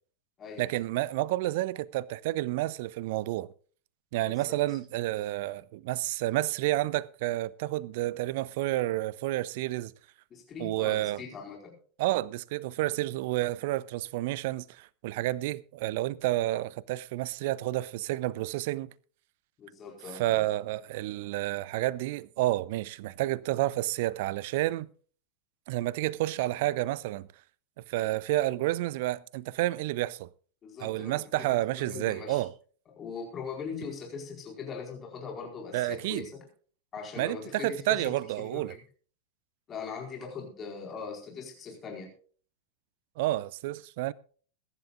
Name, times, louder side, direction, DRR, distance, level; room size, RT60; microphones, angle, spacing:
voice 1, 0.6-3.5 4.1-9.9 10.6-11.2 12.0-18.9 20.1-24.9 25.7-27.3 27.9-30.3 30.8-32.5 35.7-36.2 37.2-38.8 43.2-44.1, right 16 dB, 50° right, 0.6 m, -30 dB
voice 2, 4.2-4.8 10.3-11.7 19.6-20.4 30.6-32.5 32.9-36.4 36.9-38.1 38.4-38.8 39.7-42.1, left 5 dB, 25° left, 4.4 m, -41 dB
22.5 x 11.5 x 2.4 m
figure-of-eight pair, 90°, 0 cm